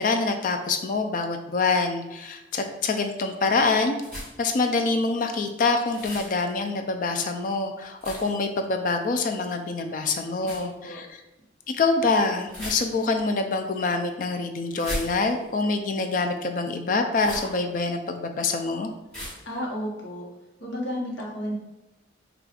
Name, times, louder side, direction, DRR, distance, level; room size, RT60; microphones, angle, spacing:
voice 1, 0.0-4.0 4.4-11.2 11.7-18.9, left 3 dB, 45° left, 6 dB, 0.3 m, -25 dB
sound 1, 4.0-4.5 5.9-6.3 8.0-8.4 10.4-10.7 12.5-13.2 14.7-15.5 17.1-17.6 19.1-19.5, equal, 5° left, 1.2 m, -36 dB
voice 2, 10.4-11.0 19.5-20.3 20.6-21.5, equal, 75° left, -2 dB, 1.0 m, -32 dB
4.9 x 2.3 x 2.3 m, 0.97 s
head